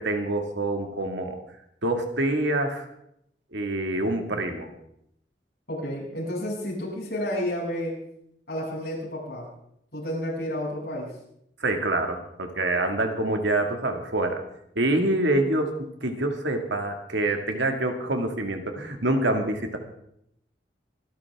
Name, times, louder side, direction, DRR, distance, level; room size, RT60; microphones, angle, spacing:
voice 1, 0.0-1.4 1.8-2.9 3.5-4.7 11.6-14.4 14.8-19.8, right 2 dB, 90° right, 4 dB, 2.1 m, -26 dB
voice 2, 5.7-7.9 8.5-9.5 9.9-11.1, equal, 60° left, -5 dB, 7.8 m, -31 dB
25.5 x 12.5 x 3.6 m, 0.76 s
head